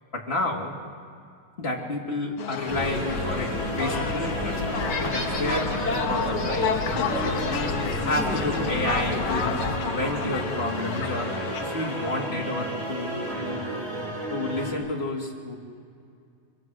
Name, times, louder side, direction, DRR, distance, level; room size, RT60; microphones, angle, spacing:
voice 1, 0.1-0.8 1.6-7.6 8.0-13.8 14.3-15.5, left 2 dB, 20° left, -1 dB, 2.8 m, -31 dB
sound 1, 2.4-12.3, left 6 dB, 60° left, 1.6 m, -32 dB
sound 2, 2.6-14.7, right 1 dB, 60° right, 8.0 m, -33 dB
sound 3, 2.7-9.8, left 3 dB, 35° left, 2.5 m, -30 dB
26.0 x 24.5 x 8.0 m, 2.3 s
omnidirectional pair, 3.5 m